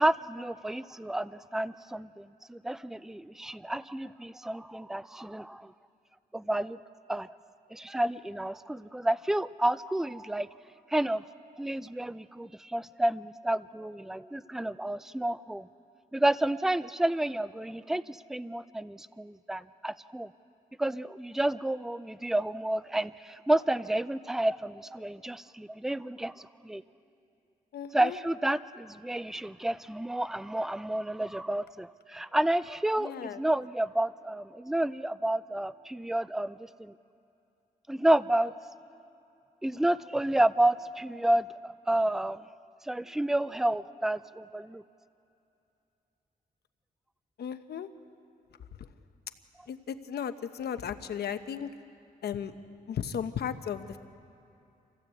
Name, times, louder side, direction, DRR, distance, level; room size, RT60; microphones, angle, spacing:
voice 1, 0.0-5.7 6.3-6.8 7.1-7.3 7.7-10.5 10.9-11.2 11.6-15.7 16.1-20.3 20.8-26.8 27.9-36.9 37.9-38.8 39.6-42.5 42.8-44.8, right 1 dB, 5° right, 16 dB, 0.5 m, -30 dB
voice 2, 27.7-28.2 33.0-33.4 47.4-47.9 49.7-51.7 52.2-52.5 52.9-54.0, left 8 dB, 85° left, 9 dB, 1.0 m, -35 dB
27.0 x 16.0 x 8.3 m, 2.7 s
cardioid pair, 100°, 16 cm